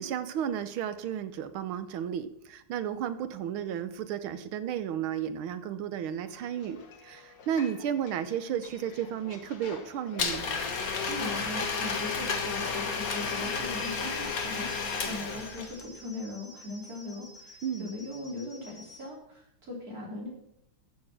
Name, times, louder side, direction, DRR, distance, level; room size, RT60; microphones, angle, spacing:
voice 1, 0.0-10.5 17.6-17.9, right 9 dB, 85° right, 12 dB, 1.7 m, -33 dB
sound 1, 6.2-14.2, left 4 dB, 65° left, 2.2 m, -48 dB
Domestic sounds home sounds, 10.2-15.8, left 5 dB, 45° left, 1.8 m, -32 dB
voice 2, 11.1-20.3, left 2 dB, 45° right, -2 dB, 4.2 m, -40 dB
sound 2, 13.2-19.1, left 2 dB, 25° left, 3.3 m, -52 dB
13.5 x 7.3 x 6.3 m, 0.76 s
omnidirectional pair, 2.2 m